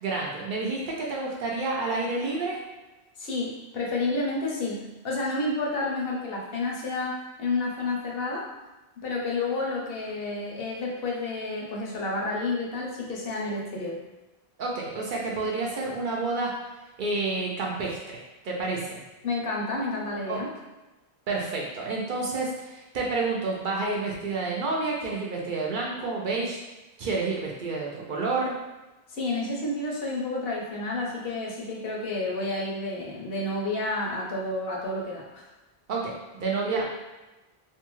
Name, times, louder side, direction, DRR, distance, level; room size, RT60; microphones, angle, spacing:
voice 1, 0.0-2.6 14.6-16.5 17.0-18.2 18.4-19.0 20.3-20.4 21.3-26.6 27.0-28.5 35.9-36.8, right 3 dB, 60° right, -2 dB, 0.6 m, -29 dB
voice 2, 3.2-8.5 9.0-14.0 19.2-20.5 29.1-35.5, left 2 dB, 70° left, -2 dB, 0.8 m, -30 dB
2.6 x 2.2 x 3.0 m, 1.1 s
omnidirectional pair, 1.0 m